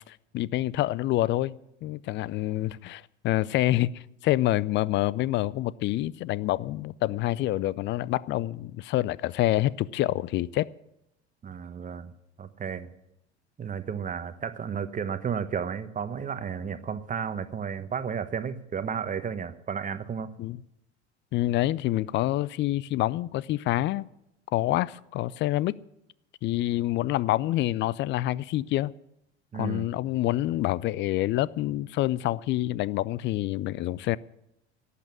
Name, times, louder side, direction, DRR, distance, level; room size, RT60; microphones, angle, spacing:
voice 1, 0.1-10.7 20.4-20.6 21.3-24.1 24.5-25.8 26.4-28.9 29.5-34.2, left 15 dB, 35° left, 0.5 m, -27 dB
voice 2, 11.4-12.1 12.4-12.9 13.6-20.3 29.5-29.9, right 7 dB, 25° right, 1.1 m, -33 dB
12.0 x 8.5 x 9.4 m
figure-of-eight pair, 75°, 34 cm